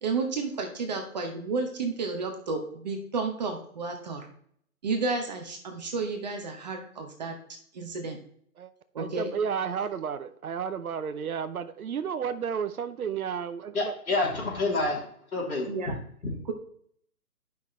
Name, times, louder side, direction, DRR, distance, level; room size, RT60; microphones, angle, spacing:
voice 1, 0.0-4.3 4.8-7.3 7.7-8.2 8.9-9.3 15.7-16.0, right 4 dB, 30° right, 0.9 m, -31 dB
voice 2, 9.0-13.9, right 7 dB, 70° right, 0.8 m, -32 dB
voice 3, 13.7-15.0 15.3-16.0 16.2-16.3, left 2 dB, 70° left, 3.3 m, -28 dB
10.5 x 5.8 x 3.2 m
hypercardioid pair, 155°, 44 cm